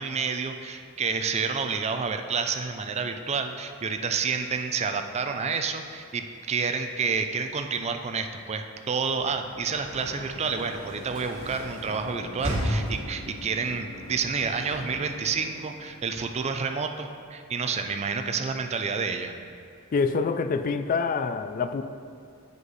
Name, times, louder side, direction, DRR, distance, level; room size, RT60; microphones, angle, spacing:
voice 1, 0.0-19.4, right 5 dB, 30° right, 6 dB, 0.4 m, -29 dB
Sliding door / Slam, 9.0-16.0, equal, 75° right, 1.9 m, -36 dB
voice 2, 19.9-21.8, left 4 dB, 40° left, 10 dB, 0.3 m, -26 dB
7.9 x 5.2 x 4.0 m, 2.2 s
head